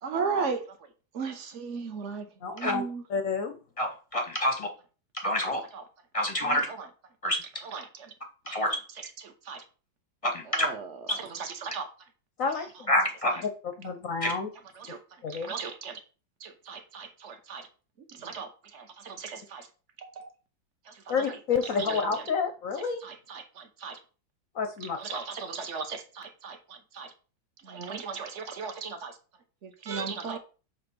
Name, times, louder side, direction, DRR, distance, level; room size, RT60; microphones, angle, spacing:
voice 1, 0.0-0.8 1.1-2.3 2.5-3.0 5.7-5.8 6.4-6.9 7.6-8.1 8.5-8.6 9.0-9.6 10.4-11.9 12.6-12.7 13.3-13.4 14.8-15.0 15.3-16.0 16.4-17.7 18.1-19.7 20.0-20.3 20.9-21.4 21.8-22.2 23.0-24.0 24.8-27.1 27.6-29.2 29.6-30.4, right 5 dB, 50° right, 0.9 m, -37 dB
voice 2, 2.4-2.8 3.1-3.5 12.4-12.9 13.8-14.5 15.2-15.5 21.1-23.0 24.5-25.2, left 5 dB, 65° left, 0.8 m, -29 dB
voice 3, 3.8-4.7 5.1-5.6 6.1-6.7 7.2-7.4 8.5-8.7 10.2-10.7 11.1-11.2 12.9-13.4 14.2-14.3, left 1 dB, 30° left, 0.6 m, -27 dB
7.7 x 3.0 x 6.1 m
omnidirectional pair, 2.2 m